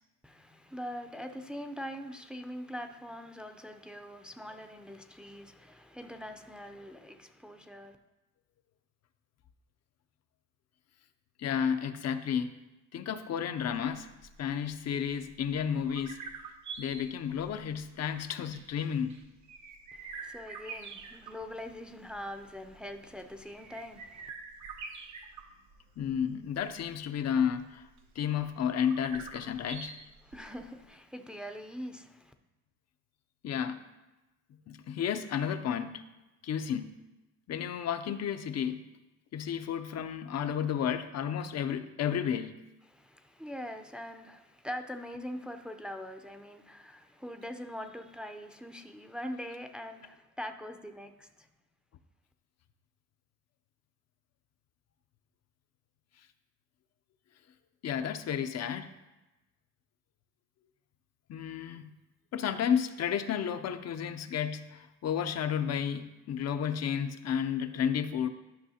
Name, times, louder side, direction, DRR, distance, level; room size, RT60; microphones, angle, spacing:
voice 1, 0.2-8.0 19.9-24.3 29.6-29.7 30.2-32.3 42.9-51.5, equal, 5° right, 0.5 m, -43 dB
voice 2, 11.4-12.5 12.9-14.1 14.4-16.2 16.8-19.2 26.0-27.9 28.2-30.1 33.4-33.8 34.7-36.0 36.4-36.9 37.5-38.8 39.3-42.6 57.8-58.9 61.3-61.9 62.3-68.3, left 8 dB, 60° left, 0.6 m, -32 dB
sound 1, 13.6-30.8, right 5 dB, 75° right, 1.0 m, -47 dB
11.5 x 5.5 x 2.8 m
cardioid pair, 90°, 30 cm